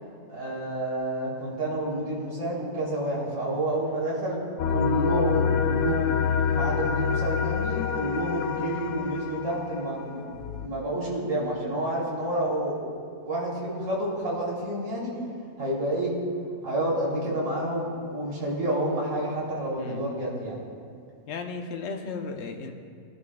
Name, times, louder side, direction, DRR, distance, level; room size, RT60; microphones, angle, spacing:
voice 1, 0.0-4.4 4.7-10.2 10.5-12.8 13.2-15.2 15.6-16.1 16.6-20.6, right 1 dB, 80° right, -5 dB, 4.2 m, -29 dB
sound 1, 4.6-10.7, left 7 dB, 85° left, 1.4 m, -27 dB
voice 2, 19.8-20.1 21.3-22.7, left 4 dB, 50° left, 4 dB, 1.0 m, -35 dB
22.0 x 11.0 x 2.4 m, 2.3 s
omnidirectional pair, 1.9 m